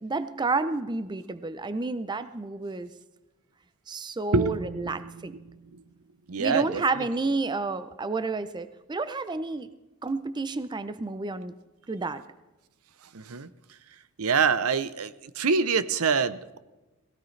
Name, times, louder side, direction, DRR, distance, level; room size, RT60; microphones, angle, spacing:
voice 1, 0.0-2.9 3.9-5.3 6.4-9.7 10.0-11.5 11.9-12.2, right 3 dB, 20° right, 12 dB, 0.5 m, -30 dB
voice 2, 4.3-5.8 6.3-7.1 13.1-13.5 14.2-16.6, right 5 dB, 70° right, 14 dB, 0.7 m, -26 dB
17.5 x 17.0 x 3.2 m, 1.1 s
head